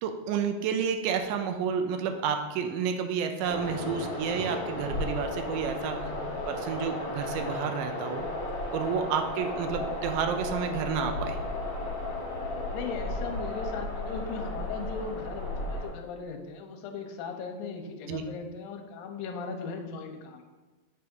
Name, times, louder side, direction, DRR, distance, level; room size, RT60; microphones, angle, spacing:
voice 1, 0.0-6.1 6.5-8.3 8.7-11.4 18.1-18.2, right 7 dB, 80° right, 6 dB, 1.9 m, -30 dB
sound 1, 3.4-15.9, left 1 dB, 55° left, 2.5 m, -34 dB
voice 2, 12.7-20.4, left 5 dB, 80° left, 4 dB, 2.4 m, -38 dB
7.8 x 3.4 x 5.3 m, 1.2 s
omnidirectional pair, 4.3 m